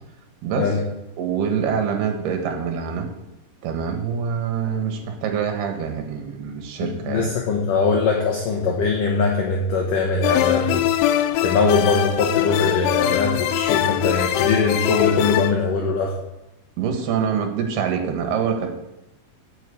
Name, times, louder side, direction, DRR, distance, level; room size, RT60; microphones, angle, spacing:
voice 1, 0.4-0.8 1.2-3.1 3.6-7.3 16.8-18.8, right 7 dB, 65° right, 4 dB, 3.2 m, -25 dB
voice 2, 6.8-10.8 11.4-16.1, left 4 dB, 65° left, 0 dB, 2.2 m, -21 dB
sound 1, 10.2-15.5, left 12 dB, 85° left, 3.1 m, -22 dB
9.1 x 7.2 x 8.3 m, 0.93 s
omnidirectional pair, 5.3 m